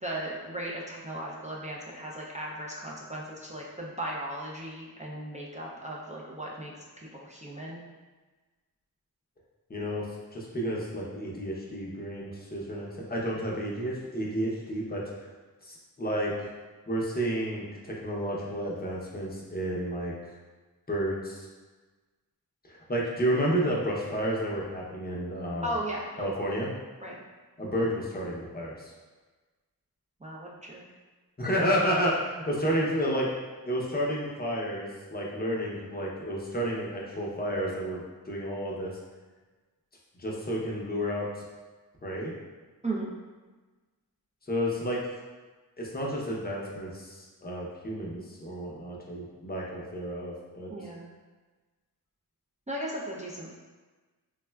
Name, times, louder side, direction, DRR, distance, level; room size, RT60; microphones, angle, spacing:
voice 1, 0.0-6.7 7.1-7.8 25.6-26.3 27.0-27.2 30.2-30.8 42.8-43.1 50.7-51.1 52.7-53.5, right 1 dB, 20° right, -4 dB, 0.4 m, -36 dB
voice 2, 9.7-15.1 15.6-16.5 16.9-20.1 20.9-21.5 22.7-25.7 26.2-26.7 27.6-28.9 31.4-33.3 33.6-38.9 40.2-41.3 42.0-42.3 44.5-45.0 45.8-50.7, equal, 25° left, -3 dB, 0.6 m, -31 dB
3.4 x 2.1 x 2.2 m, 1.3 s
wide cardioid pair, 55°, 38 cm